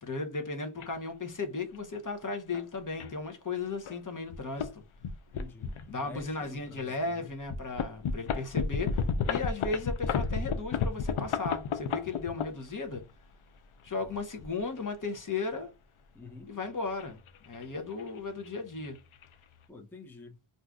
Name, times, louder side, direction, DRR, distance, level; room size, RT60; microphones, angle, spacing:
voice 1, 0.0-4.8 5.9-13.0 13.8-15.7 16.5-17.2 17.5-19.0, left 3 dB, 40° left, 0.8 m, -35 dB
sound 1, 0.8-0.9 1.7-2.0 2.5-2.6 3.0-3.1 3.8-4.0 4.3-4.7 5.0-6.3 6.8-6.9 7.5-13.0 13.9-14.8 16.5-17.6 17.9-18.2 18.4-18.5 18.8-19.3, left 6 dB, 75° left, 0.6 m, -32 dB
voice 2, 5.3-7.3 16.1-16.5 19.7-20.4, left 4 dB, 5° left, 0.5 m, -48 dB
2.6 x 2.4 x 3.4 m
wide cardioid pair, 70°, 50 cm